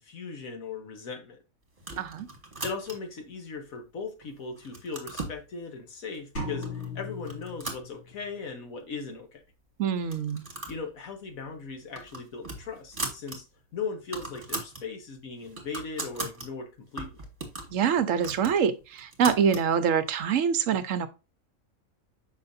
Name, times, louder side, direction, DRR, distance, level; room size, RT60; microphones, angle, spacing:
voice 1, 0.0-1.4 2.6-9.4 10.7-13.4 13.7-17.2, left 4 dB, 75° left, 1.6 m, -38 dB
sound 1, 1.8-3.2 3.8-4.3 4.6-5.4 6.1-6.2 6.6-6.9 7.2-8.5 8.8-8.9 9.1-9.2 10.0-10.8 11.2-11.3 11.7-13.4 13.7-13.8 14.0-14.8 15.2-16.5 17.0-19.7, right 2 dB, 25° right, 1.5 m, -38 dB
sound 2, 6.4-8.3, left 2 dB, 55° left, 2.7 m, -37 dB
voice 2, 9.8-10.5 17.7-21.1, right 7 dB, 65° right, 1.1 m, -25 dB
6.6 x 5.6 x 2.6 m
omnidirectional pair, 1.5 m